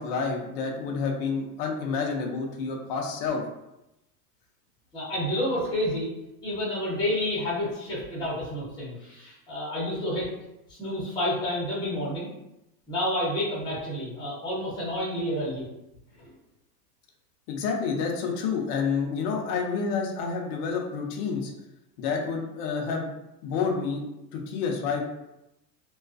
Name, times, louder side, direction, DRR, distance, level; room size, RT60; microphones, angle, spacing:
voice 1, 0.0-3.4 17.5-21.5 22.0-23.1 23.4-24.0 24.3-25.0, left 5 dB, 35° left, 1 dB, 0.4 m, -29 dB
voice 2, 4.9-6.1 6.4-10.3 10.7-12.3 12.9-15.6 16.2-16.3, left 1 dB, 10° left, -8 dB, 0.7 m, -29 dB
2.3 x 2.2 x 2.4 m, 0.90 s
supercardioid pair, 135°, 50 cm